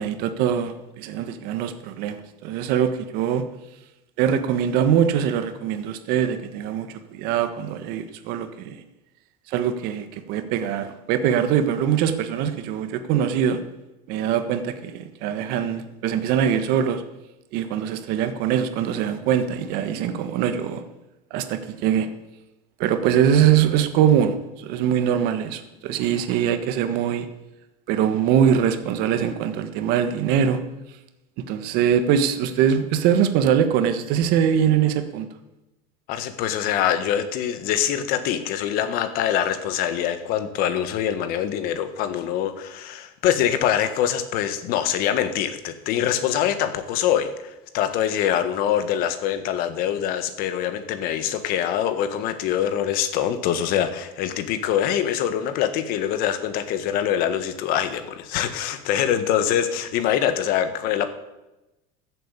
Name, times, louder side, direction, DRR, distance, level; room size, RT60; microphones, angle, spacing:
voice 1, 0.0-3.4 4.2-8.8 9.5-13.6 14.1-17.0 17.5-20.8 21.3-22.1 22.8-27.3 27.9-30.6 31.5-35.3, right 9 dB, 55° right, 9 dB, 1.5 m, -22 dB
voice 2, 36.1-61.1, left 10 dB, 50° left, 10 dB, 1.6 m, -24 dB
14.0 x 7.8 x 8.3 m, 0.98 s
cardioid pair, 155°, 20 cm